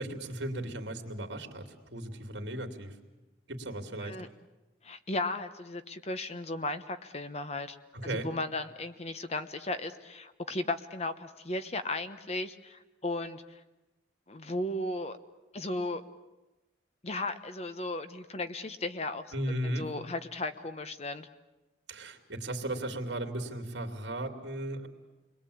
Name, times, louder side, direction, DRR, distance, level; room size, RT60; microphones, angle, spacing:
voice 1, 0.0-2.9 3.5-4.2 8.0-8.3 19.3-19.9 21.9-24.9, right 1 dB, 75° right, 4 dB, 2.9 m, -36 dB
voice 2, 4.8-7.8 8.0-13.6 14.3-15.2 15.5-16.0 17.0-19.2 19.6-21.3, left 2 dB, 35° left, 10 dB, 1.0 m, -35 dB
29.0 x 22.0 x 8.6 m, 1.1 s
head